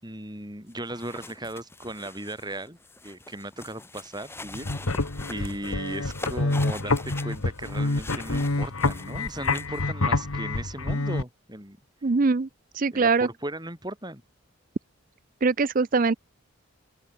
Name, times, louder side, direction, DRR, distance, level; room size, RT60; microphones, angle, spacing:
voice 1, 0.0-2.8 3.0-4.7 5.3-11.8 12.9-14.2, right 1 dB, 20° right, 5.6 m, -37 dB
sound 1, 0.7-9.8, left 2 dB, 10° left, 7.2 m, -43 dB
sound 2, 4.5-11.2, left 2 dB, 75° left, 1.6 m, -27 dB
voice 2, 12.0-12.5 12.7-13.3 15.4-16.1, right 4 dB, 40° right, 0.5 m, -22 dB
open air
head